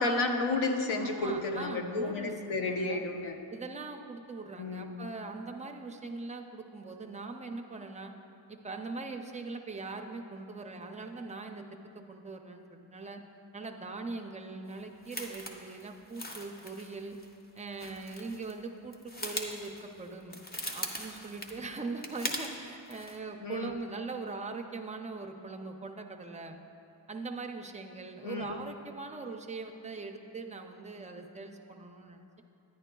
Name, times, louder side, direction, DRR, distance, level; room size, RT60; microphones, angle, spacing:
voice 1, 0.0-3.4 4.6-5.0 23.4-23.8 28.2-28.6, left 2 dB, 75° left, 4 dB, 0.9 m, -32 dB
voice 2, 0.9-3.0 3.5-8.1 8.5-13.2 13.5-17.2 17.6-20.4 20.7-26.6 27.1-32.4, right 3 dB, 15° right, 3 dB, 0.3 m, -41 dB
sound 1, 14.8-18.6 18.9-22.6 22.9-23.2, left 1 dB, 20° left, 0.6 m, -41 dB
10.5 x 10.0 x 2.2 m, 2.7 s
wide cardioid pair, 130°, 48 cm